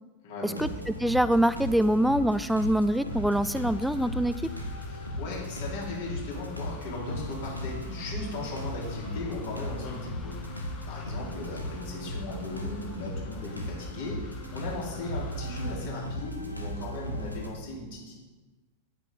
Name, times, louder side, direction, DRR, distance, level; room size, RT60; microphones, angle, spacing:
voice 1, 0.2-0.6 4.9-10.4 10.9-18.1, left 2 dB, 55° left, -4 dB, 3.2 m, -38 dB
sound 1, 0.5-17.5, left 1 dB, 90° left, 1.2 m, -37 dB
voice 2, 1.0-4.4, right 1 dB, ahead, 15 dB, 0.3 m, -24 dB
sound 2, 3.1-15.8, left 6 dB, 25° left, 0.7 m, -47 dB
9.6 x 9.0 x 3.6 m, 1.2 s
figure-of-eight pair, 90°, 0 cm